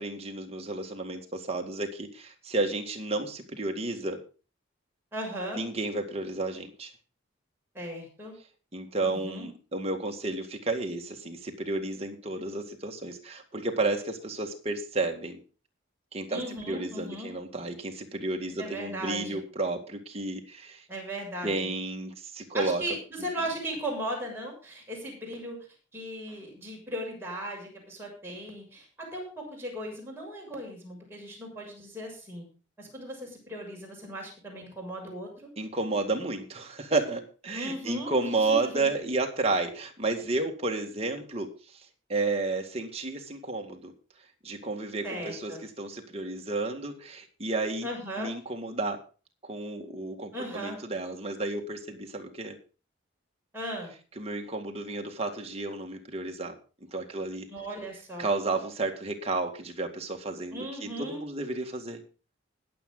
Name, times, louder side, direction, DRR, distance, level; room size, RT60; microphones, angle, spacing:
voice 1, 0.0-4.2 5.5-6.9 8.7-15.4 16.1-16.4 16.7-20.8 21.4-22.8 35.6-43.9 44.4-47.9 48.2-49.0 49.4-52.6 54.2-56.6 56.9-57.5 58.2-62.0, right 2 dB, 30° right, 3 dB, 2.0 m, -32 dB
voice 2, 5.1-5.6 7.7-8.3 9.0-9.5 16.3-17.3 18.6-19.4 20.9-21.7 22.5-25.7 25.9-32.5 32.8-35.5 37.5-38.9 45.0-45.6 47.8-48.4 50.3-50.8 53.5-53.9 57.5-58.3 60.5-61.2, right 1 dB, 10° right, -2 dB, 6.6 m, -37 dB
21.0 x 7.8 x 3.9 m, 0.36 s
head